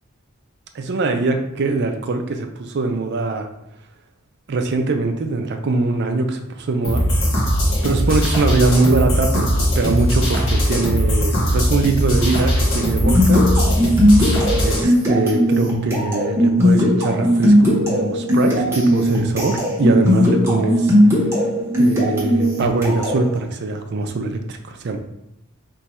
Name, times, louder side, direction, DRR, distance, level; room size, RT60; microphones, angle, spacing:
voice 1, 0.7-3.5 4.5-7.1 7.8-13.4 14.6-21.2 21.8-25.0, right 3 dB, 55° right, 5 dB, 0.4 m, -22 dB
sound 1, 6.8-14.8, equal, 70° left, 1.1 m, -19 dB
sound 2, 13.0-23.3, equal, 10° right, 0.9 m, -17 dB
3.0 x 2.3 x 4.2 m, 0.82 s
head